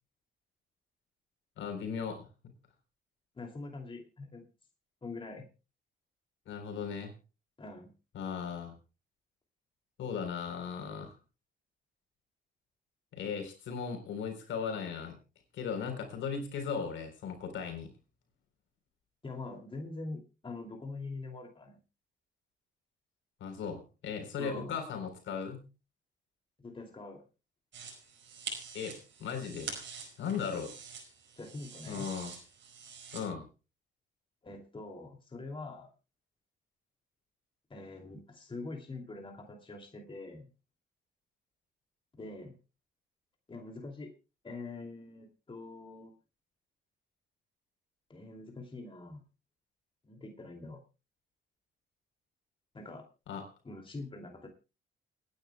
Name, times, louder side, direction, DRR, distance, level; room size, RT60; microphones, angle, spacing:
voice 1, 1.6-2.2 6.5-7.1 8.1-8.7 10.0-11.1 13.1-15.2 15.5-17.9 23.4-25.6 28.7-29.8 30.2-30.7 31.9-32.4 33.1-33.5 53.3-53.4, left 6 dB, 75° left, 4 dB, 3.9 m, -37 dB
voice 2, 3.3-4.4 5.0-5.5 7.6-7.9 19.2-21.8 24.4-24.8 26.6-27.2 31.4-32.1 34.4-35.9 37.7-40.5 42.1-42.5 43.5-44.1 44.4-46.1 48.1-49.2 50.0-50.8 52.7-53.0 53.6-54.5, left 3 dB, 25° left, 2 dB, 2.7 m, -44 dB
sound 1, 27.7-33.2, right 5 dB, 70° right, 5.2 m, -45 dB
29.0 x 9.9 x 2.3 m, 0.31 s
cardioid pair, 90°, 20 cm